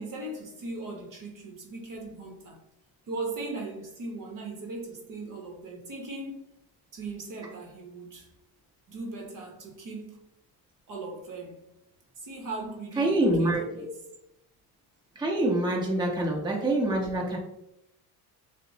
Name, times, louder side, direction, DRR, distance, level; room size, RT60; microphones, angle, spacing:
voice 1, 0.0-2.6 3.1-6.5 6.9-8.3 8.9-10.2 10.9-11.6 12.2-13.9, right 3 dB, 45° right, 0.9 m, -38 dB
voice 2, 13.0-13.9 15.2-17.4, right 1 dB, 10° right, 0.9 m, -26 dB
5.8 x 2.1 x 2.7 m
supercardioid pair, 95°, 46 cm